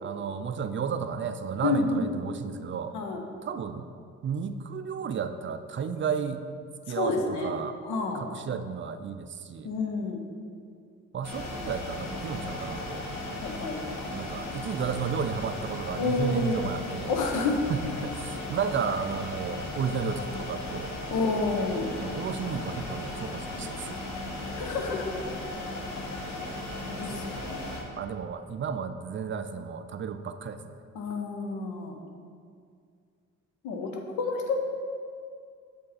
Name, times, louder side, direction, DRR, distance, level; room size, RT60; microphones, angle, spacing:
voice 1, 0.0-2.9 3.4-3.9 4.2-6.5 6.9-7.8 8.1-9.7 11.1-13.0 14.1-17.1 17.7-20.9 22.0-24.0 26.9-27.2 28.0-30.8, right 6 dB, 40° right, 9 dB, 0.4 m, -33 dB
voice 2, 1.6-2.1 2.9-3.2 6.9-7.5 7.8-8.2 9.6-10.2 13.4-13.8 16.0-16.6 17.1-17.6 21.1-21.9 23.6-23.7 24.6-25.1 26.7-27.6 30.9-32.0 33.6-33.9 34.2-34.6, left 3 dB, 90° left, 3 dB, 0.9 m, -29 dB
sound 1, 11.2-27.8, left 1 dB, 65° left, 1.4 m, -36 dB
7.5 x 5.1 x 4.2 m, 2.2 s
cardioid pair, 90°, 30 cm